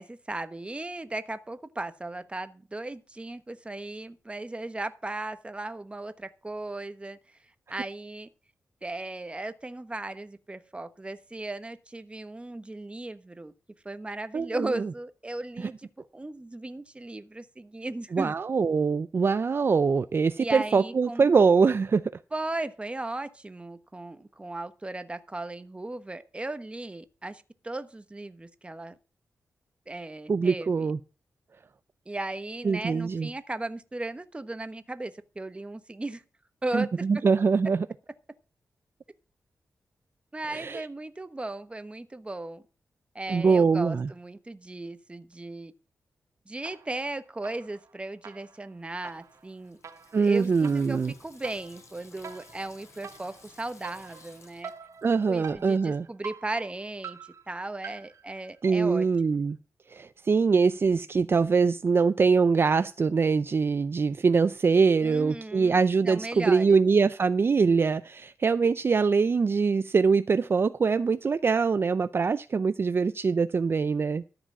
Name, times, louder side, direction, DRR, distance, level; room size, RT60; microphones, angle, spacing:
voice 1, 0.0-7.4 7.7-8.3 8.8-13.5 13.8-18.3 20.4-21.3 22.3-29.0 29.9-30.9 32.1-36.2 36.6-37.0 40.3-42.6 43.1-45.7 46.5-49.8 50.2-54.7 55.3-59.4 65.0-66.8, right 2 dB, 20° right, 1.1 m, -36 dB
voice 2, 14.3-14.8 15.6-15.7 18.1-22.1 30.3-31.0 32.6-33.3 36.7-37.9 40.5-40.9 43.3-44.1 50.1-51.1 55.0-56.1 58.6-59.6 59.9-74.2, right 5 dB, 45° right, 0.5 m, -23 dB
sound 1, 46.6-47.1 47.4-59.0, right 6 dB, 65° right, 1.2 m, -46 dB
Water tap faucet / Sink (filling or washing), 48.9-55.7, left 3 dB, 60° left, 5.9 m, -55 dB
13.5 x 5.0 x 7.3 m
cardioid pair, 80°, 6 cm